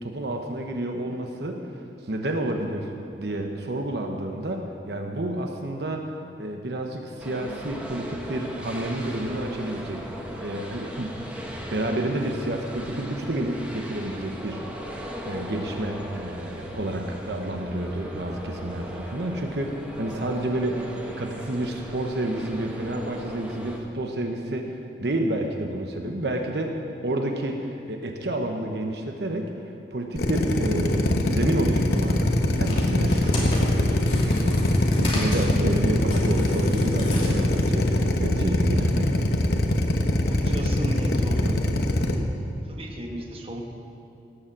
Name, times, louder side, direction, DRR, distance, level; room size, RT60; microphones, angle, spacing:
voice 1, 0.0-1.7 2.0-6.1 6.4-10.0 10.4-11.1 11.7-14.6 14.9-19.7 20.0-26.7 27.0-29.5 29.9-39.1 41.4-41.6, right 1 dB, 70° right, 3 dB, 1.0 m, -30 dB
sound 1, 7.2-23.8, equal, 5° right, 1.3 m, -38 dB
Drill, 30.2-42.1, left 1 dB, 65° left, 1.0 m, -22 dB
sound 2, 32.7-37.8, left 1 dB, 30° left, 2.6 m, -34 dB
voice 2, 40.3-41.5 42.7-43.6, equal, 30° right, 1 dB, 1.3 m, -34 dB
17.5 x 7.1 x 7.5 m, 2.6 s
head